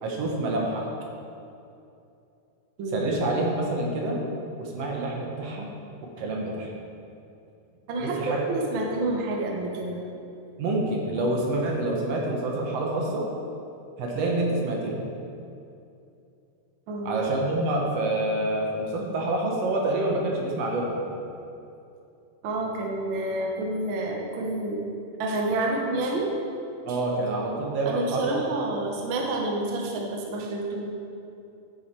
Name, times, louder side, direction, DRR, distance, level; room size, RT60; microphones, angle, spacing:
voice 1, 0.0-0.8 2.9-4.2 4.6-5.7 6.2-6.7 8.0-8.4 10.6-13.3 14.0-15.0 17.0-21.0 26.9-28.2, right 2 dB, 60° right, -1 dB, 1.9 m, -27 dB
voice 2, 7.9-10.1 16.9-17.2 22.4-24.8 25.2-26.3 26.9-27.0 27.8-30.9, right 2 dB, 80° right, -1 dB, 1.1 m, -29 dB
9.8 x 7.2 x 4.5 m, 2.7 s
omnidirectional pair, 3.8 m